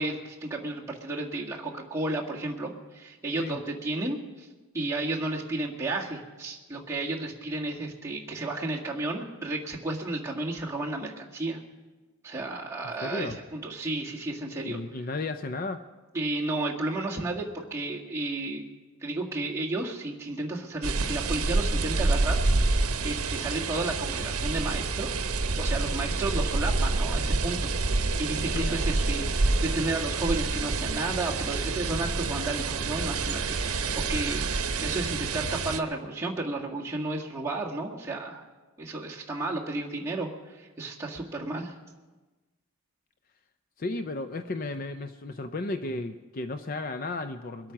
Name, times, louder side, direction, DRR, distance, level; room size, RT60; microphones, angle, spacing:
voice 1, 0.0-4.5 4.7-11.6 12.2-14.8 16.1-18.6 19.0-22.4 22.7-25.3 25.6-38.4 38.8-41.7, right 2 dB, 15° right, -4 dB, 1.7 m, -32 dB
voice 2, 13.0-13.4 14.6-15.8 28.5-28.8 43.8-47.7, left 2 dB, 40° left, 10 dB, 0.5 m, -34 dB
sound 1, 20.8-35.8, right 3 dB, 75° right, 0.9 m, -28 dB
22.5 x 8.7 x 5.9 m, 1.2 s
head